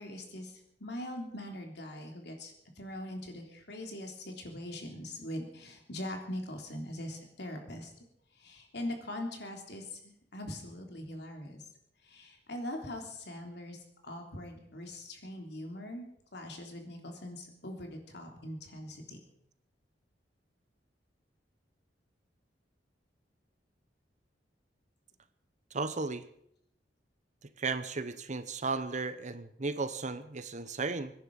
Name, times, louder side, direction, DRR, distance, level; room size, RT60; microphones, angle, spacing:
voice 1, 0.0-7.9 8.3-11.7 12.0-16.0 16.3-19.2, left 1 dB, 65° left, 3 dB, 3.4 m, -42 dB
voice 2, 25.7-26.3 27.6-31.1, right 4 dB, 45° right, 12 dB, 1.0 m, -35 dB
24.5 x 10.5 x 5.5 m, 0.72 s
head